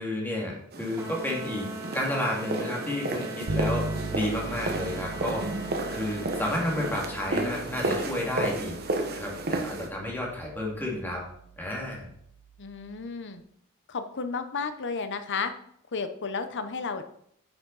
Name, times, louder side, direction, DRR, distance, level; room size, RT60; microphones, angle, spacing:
voice 1, 0.0-1.7 1.9-5.4 5.9-8.7 9.1-11.2 11.6-12.1, left 1 dB, 10° left, -3 dB, 2.3 m, -31 dB
sound 1, 0.7-9.9, right 2 dB, 45° right, 1.2 m, -32 dB
sound 2, 1.0-7.1, right 3 dB, 10° right, 1.4 m, -41 dB
Bass guitar, 3.5-13.1, right 2 dB, 65° right, 1.1 m, -39 dB
voice 2, 12.6-13.4 13.9-15.5 15.9-17.0, left 5 dB, 55° left, 9 dB, 0.8 m, -32 dB
10.5 x 6.3 x 4.1 m, 0.70 s
head